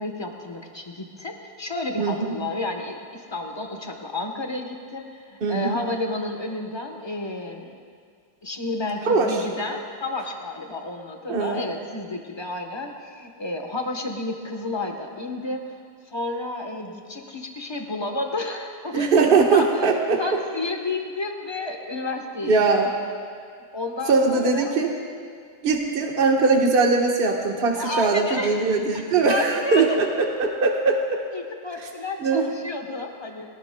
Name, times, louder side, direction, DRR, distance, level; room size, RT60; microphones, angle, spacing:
voice 1, 0.0-7.8 8.4-15.6 16.1-19.1 19.5-19.9 20.2-22.5 23.7-24.8 27.7-28.7 29.3-29.9 31.3-33.5, left 2 dB, 20° left, 3 dB, 0.7 m, -31 dB
voice 2, 2.0-2.3 5.4-5.8 9.0-9.4 11.3-11.6 18.9-20.2 22.4-22.9 24.1-24.9 25.6-30.1 30.4-31.2 32.2-32.5, right 4 dB, 35° right, 0 dB, 1.3 m, -21 dB
21.5 x 18.0 x 2.3 m, 2.2 s
omnidirectional pair, 2.1 m